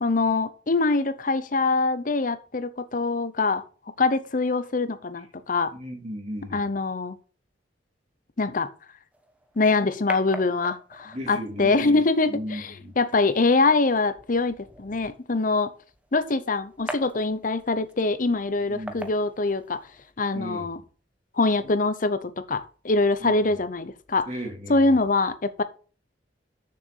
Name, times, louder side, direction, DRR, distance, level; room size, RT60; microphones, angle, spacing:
voice 1, 0.0-3.6 4.0-5.7 6.5-7.2 8.4-8.7 9.6-15.7 16.1-19.8 20.2-20.8 21.3-24.3 24.7-25.6, left 3 dB, 50° left, 13 dB, 0.8 m, -24 dB
voice 2, 5.7-6.6 11.1-12.0 12.3-12.9 18.7-19.1 20.3-20.7 23.2-23.3 24.3-25.0, equal, 40° right, 3 dB, 2.1 m, -36 dB
sound 1, 9.1-20.1, right 1 dB, 10° right, 1.1 m, -44 dB
6.7 x 6.6 x 6.5 m, 0.38 s
head